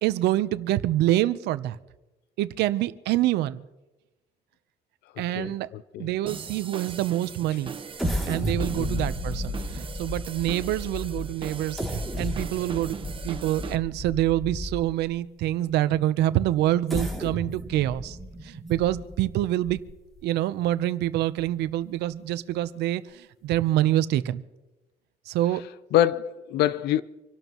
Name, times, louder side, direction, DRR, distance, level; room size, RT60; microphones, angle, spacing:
voice 1, 0.0-1.8 2.4-3.6 5.2-5.7 6.0-7.8 8.3-13.0 13.2-18.2 18.4-19.8 20.2-24.4 25.3-25.6, right 14 dB, 80° right, 0.8 m, -26 dB
voice 2, 5.3-6.1 8.8-9.0 25.9-27.0, left 12 dB, 75° left, 0.6 m, -25 dB
sound 1, 6.3-13.8, right 6 dB, 30° right, 1.1 m, -40 dB
sound 2, 8.0-15.1 15.7-15.8 16.7-20.2 20.7-20.8 21.2-21.4, equal, ahead, 2.8 m, -33 dB
26.5 x 12.0 x 3.1 m
cardioid pair, 110°, 17 cm